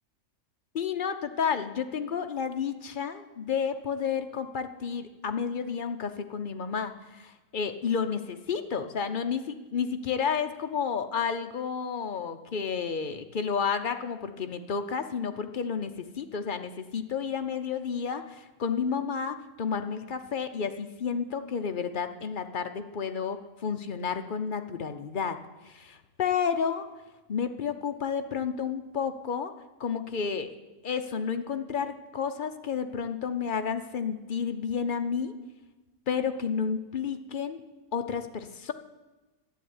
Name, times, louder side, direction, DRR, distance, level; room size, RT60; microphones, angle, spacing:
voice 1, 0.7-25.4 25.6-26.9 27.3-29.5 29.8-30.5 30.8-35.4 36.1-37.6 37.9-38.7, left 6 dB, 50° left, 7 dB, 0.6 m, -31 dB
11.5 x 7.6 x 9.5 m, 1.2 s
omnidirectional pair, 1.6 m